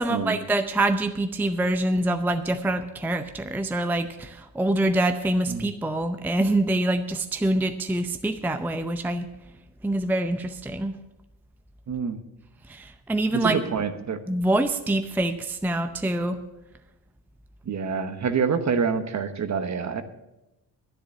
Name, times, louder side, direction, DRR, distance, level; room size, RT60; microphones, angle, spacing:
voice 1, 0.0-9.3 9.8-10.9 12.7-13.6 14.3-16.4, right 1 dB, 5° right, 8 dB, 0.6 m, -25 dB
voice 2, 11.9-12.2 13.3-14.2 17.7-20.0, right 6 dB, 40° right, 10 dB, 1.1 m, -26 dB
10.5 x 9.6 x 6.7 m, 0.99 s
cardioid pair, 95°, 43 cm